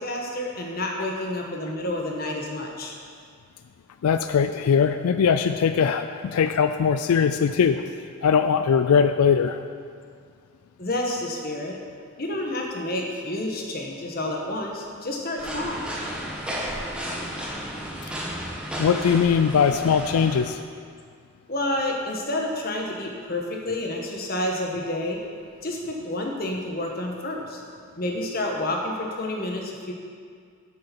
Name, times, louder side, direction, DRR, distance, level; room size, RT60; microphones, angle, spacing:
voice 1, 0.0-2.9 10.8-11.8 12.2-15.8 21.5-25.2 25.6-27.6 28.0-29.9, left 1 dB, 45° left, 0 dB, 1.3 m, -29 dB
voice 2, 4.0-7.8 8.2-9.6 18.8-20.6, left 6 dB, 90° left, 9 dB, 0.4 m, -21 dB
sound 1, 15.4-20.5, equal, 5° right, 1.1 m, -33 dB
8.6 x 6.7 x 7.0 m, 2.2 s
head